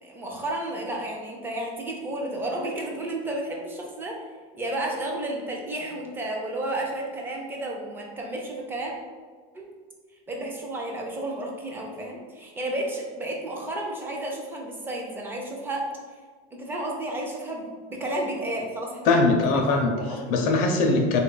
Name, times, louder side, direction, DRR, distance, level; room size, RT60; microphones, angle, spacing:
voice 1, 0.0-4.2 4.5-8.9 9.5-9.7 10.3-15.9 16.5-19.1 19.5-20.3, right 1 dB, 10° right, 0 dB, 0.4 m, -32 dB
voice 2, 19.1-21.2, left 3 dB, 50° left, 3 dB, 0.5 m, -21 dB
3.4 x 2.3 x 3.8 m, 1.5 s
cardioid pair, 170°, 18 cm